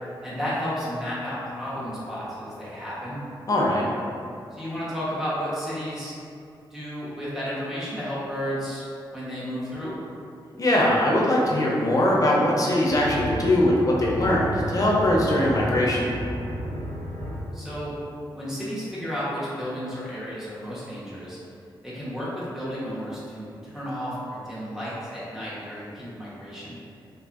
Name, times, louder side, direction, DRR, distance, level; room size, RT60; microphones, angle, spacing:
voice 1, 0.2-3.3 4.5-6.1 6.7-8.8 9.1-9.9 17.5-17.9 18.3-21.4 21.8-26.8, equal, 5° right, -10 dB, 0.8 m, -32 dB
voice 2, 3.5-3.8 10.6-16.1, left 1 dB, 40° left, -4 dB, 0.5 m, -21 dB
sound 1, 12.4-17.4, equal, 85° right, 0.5 m, -32 dB
2.5 x 2.5 x 2.4 m, 2.5 s
wide cardioid pair, 95°, 9 cm